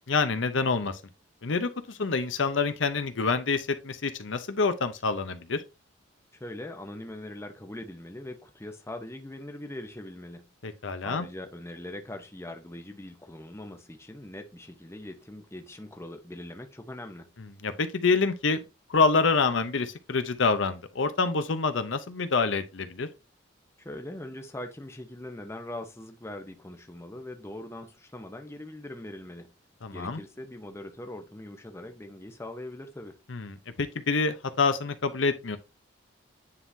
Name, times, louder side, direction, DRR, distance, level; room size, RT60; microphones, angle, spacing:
voice 1, 0.1-1.0 1.4-5.6 10.6-11.2 17.6-18.6 18.9-23.1 29.8-30.2 33.3-35.6, left 4 dB, 70° left, 0.7 m, -27 dB
voice 2, 6.4-10.5 11.0-17.3 23.8-29.5 29.9-33.2, left 1 dB, 15° left, 0.7 m, -41 dB
9.8 x 3.7 x 2.7 m
head